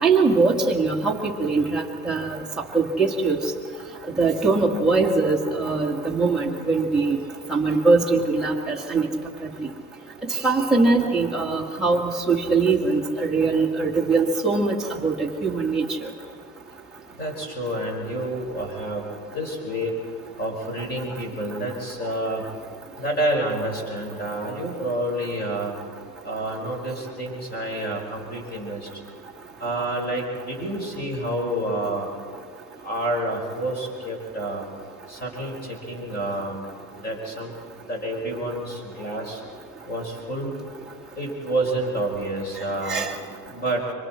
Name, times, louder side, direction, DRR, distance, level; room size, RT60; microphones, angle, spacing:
voice 1, 0.0-2.4 2.7-3.4 4.2-7.2 7.5-9.1 10.4-14.8 15.0-16.1 42.9-43.1, right 3 dB, ahead, -5 dB, 1.8 m, -22 dB
voice 2, 17.2-19.1 19.3-19.9 20.4-22.4 23.0-25.7 26.2-28.9 29.6-32.1 32.8-34.6 35.1-36.7 36.9-37.5 37.8-39.4 39.9-40.5 41.2-43.1 43.5-43.8, right 1 dB, 20° left, 1 dB, 5.0 m, -28 dB
26.0 x 25.0 x 4.4 m, 2.1 s
supercardioid pair, 165°, 48 cm